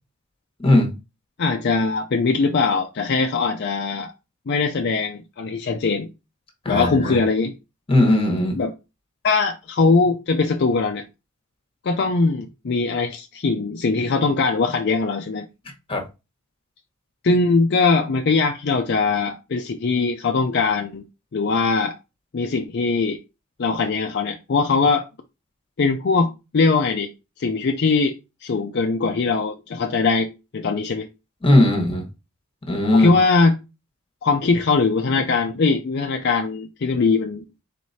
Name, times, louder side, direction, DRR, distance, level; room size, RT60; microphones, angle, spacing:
voice 1, 0.6-0.9 6.6-7.2 7.9-8.6 15.9-16.0 31.4-32.0 32.7-33.1, left 1 dB, 25° left, 1.2 m, -18 dB
voice 2, 1.4-4.1 4.5-6.1 6.7-7.5 8.6-8.7 9.2-11.0 11.8-15.5 17.2-21.0 21.3-22.0 22.3-23.2 23.6-25.1 25.8-27.1 27.4-28.2 28.4-31.1 32.9-33.6 34.2-37.4, left 4 dB, 50° left, 0.5 m, -21 dB
4.7 x 4.2 x 2.7 m
head